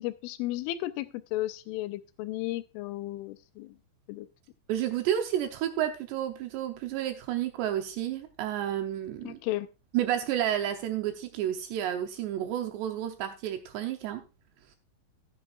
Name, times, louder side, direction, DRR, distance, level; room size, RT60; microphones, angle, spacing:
voice 1, 0.0-3.8 4.1-4.3 9.2-9.7, left 16 dB, 85° left, 3.2 m, -34 dB
voice 2, 4.7-9.4 9.9-14.2, right 11 dB, 75° right, 2.7 m, -31 dB
14.5 x 9.6 x 2.4 m
omnidirectional pair, 5.5 m